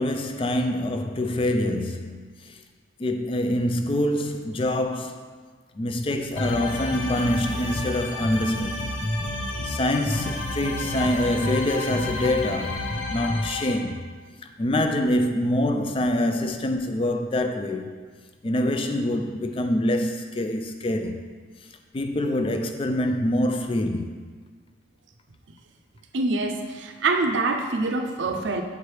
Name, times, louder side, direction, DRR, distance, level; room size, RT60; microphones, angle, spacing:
voice 1, 0.0-2.6 3.0-5.3 5.8-8.9 9.6-12.8 13.1-14.0 14.4-17.9 18.4-21.3 21.9-24.2, left 1 dB, 25° left, 0.3 m, -25 dB
sound 1, 6.4-13.7, left 1 dB, 80° left, 0.7 m, -29 dB
voice 2, 26.1-28.6, right 3 dB, 70° right, 0.5 m, -25 dB
6.6 x 4.6 x 3.2 m
head